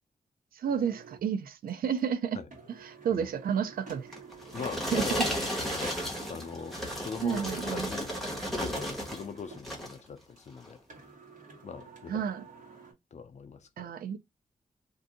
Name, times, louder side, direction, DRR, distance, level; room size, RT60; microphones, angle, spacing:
voice 1, 0.5-2.4 2.7-4.2 4.9-5.3 7.2-7.9 12.1-12.4 13.8-14.2, right 8 dB, 80° right, 0.4 m, -31 dB
sound 1, 0.6-1.2 1.7-1.8 2.0-2.1 2.5-9.7 10.1-10.2 10.4-10.5 10.9-12.9, right 3 dB, 65° right, 1.4 m, -49 dB
sound 2, 4.1-9.3 9.6-10.0 10.6-10.7, equal, ahead, 1.1 m, -34 dB
voice 2, 4.5-6.0 6.3-8.1 8.6-10.8 11.6-12.2 13.1-13.9, left 6 dB, 50° left, 0.5 m, -41 dB
2.6 x 2.5 x 3.6 m
wide cardioid pair, 140°, 15 cm